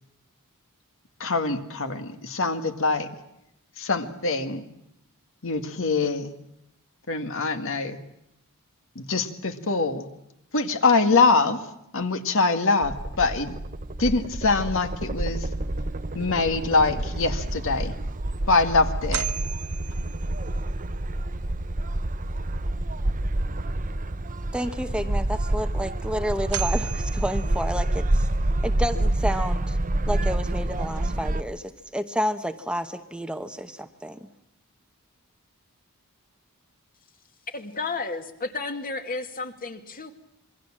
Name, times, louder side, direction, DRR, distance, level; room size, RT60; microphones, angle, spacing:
voice 1, 1.2-3.1 3.8-4.6 5.4-6.3 7.1-8.0 9.0-10.1 10.5-11.6 11.9-13.6 14.0-15.5 16.1-17.9 18.5-19.3, left 3 dB, 65° left, 7 dB, 2.0 m, -24 dB
sound 1, 12.8-31.4, right 1 dB, 40° right, 0.9 m, -28 dB
sound 2, 17.7-17.8 18.3-18.4 19.1-20.7 25.8-25.9 26.5-28.2, right 11 dB, 80° right, 1.0 m, -36 dB
voice 2, 24.5-28.3 28.6-29.8 30.1-34.3, equal, 5° right, 8 dB, 0.9 m, -30 dB
voice 3, 37.5-40.1, left 3 dB, 40° left, 7 dB, 2.2 m, -32 dB
26.5 x 22.5 x 7.5 m, 0.82 s
head